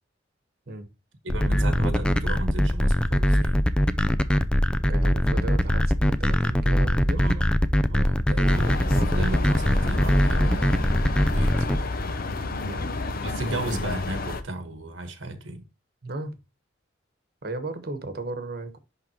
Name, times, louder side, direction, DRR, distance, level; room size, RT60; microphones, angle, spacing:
voice 1, 1.2-3.6 7.1-7.5 7.9-11.0 11.3-11.9 13.2-15.7, right 1 dB, 85° right, 1.4 m, -34 dB
sound 1, 1.3-11.8, equal, 5° left, 0.4 m, -21 dB
voice 2, 4.9-7.4 12.7-13.0 16.0-16.4 17.4-18.8, right 2 dB, 55° right, 1.2 m, -35 dB
sound 2, 8.4-14.4, left 2 dB, 50° left, 0.8 m, -30 dB
11.0 x 3.7 x 2.9 m
head